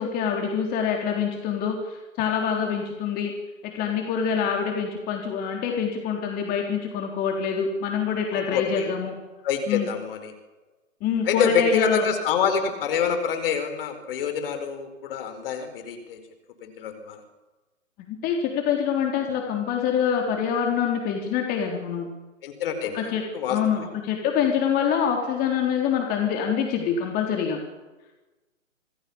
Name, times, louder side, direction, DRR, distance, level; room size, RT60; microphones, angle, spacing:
voice 1, 0.0-3.3 3.6-9.1 9.7-9.9 11.0-12.0 18.0-22.1 22.9-23.2 23.5-27.6, left 7 dB, 20° left, 1 dB, 3.9 m, -25 dB
voice 2, 8.3-8.9 9.4-10.3 11.2-16.2 16.6-17.2 22.4-23.8, left 7 dB, 45° left, 8 dB, 4.7 m, -27 dB
27.0 x 19.5 x 7.2 m, 1.1 s
hypercardioid pair, 140°, 40 cm